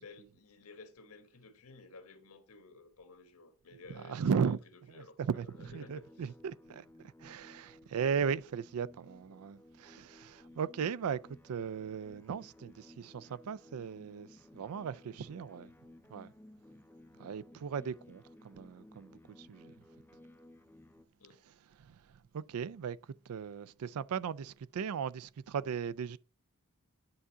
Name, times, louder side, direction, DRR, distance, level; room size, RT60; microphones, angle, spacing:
voice 1, 0.0-4.6 4.9-6.3 21.2-21.5, left 3 dB, 85° left, 1.5 m, -54 dB
voice 2, 4.0-4.6 4.9-6.8 7.2-11.2 11.4-14.3 14.5-15.7 16.1-16.3 17.2-19.7 21.8-21.9 22.3-23.0 23.3-26.2, right 6 dB, 75° right, 0.4 m, -37 dB
sound 1, 5.5-21.1, left 1 dB, 10° left, 0.4 m, -58 dB
9.8 x 3.7 x 5.5 m
head